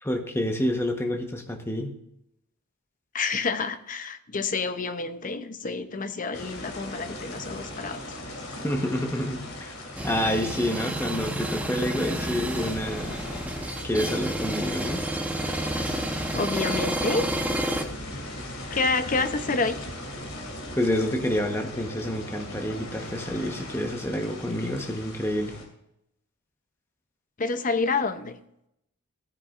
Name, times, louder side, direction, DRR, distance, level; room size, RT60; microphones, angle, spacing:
voice 1, 0.0-2.0 8.6-9.7 10.0-13.2 13.8-15.0 20.7-25.6, left 1 dB, 10° left, 3 dB, 1.1 m, -28 dB
voice 2, 3.1-8.2 16.3-17.3 18.7-19.8 27.4-28.4, left 4 dB, 35° left, 9 dB, 0.6 m, -28 dB
sound 1, 6.3-25.7, left 1 dB, 80° left, 2.5 m, -39 dB
sound 2, 10.0-17.8, right 1 dB, 5° right, 0.9 m, -30 dB
15.5 x 9.6 x 2.5 m, 0.80 s
head